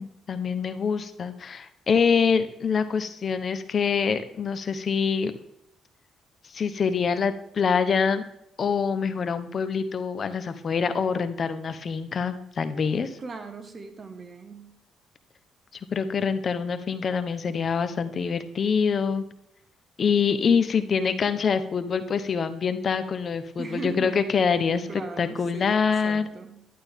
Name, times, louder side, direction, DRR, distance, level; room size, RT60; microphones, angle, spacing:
voice 1, 0.0-5.3 6.5-8.2 8.6-13.2 15.9-19.2 20.0-26.3, left 6 dB, 50° left, 10 dB, 1.0 m, -25 dB
voice 2, 13.2-14.7 23.6-24.2 24.9-26.6, right 3 dB, 35° right, 7 dB, 1.7 m, -38 dB
11.5 x 11.0 x 3.6 m, 0.78 s
cardioid pair, 90°, 0 cm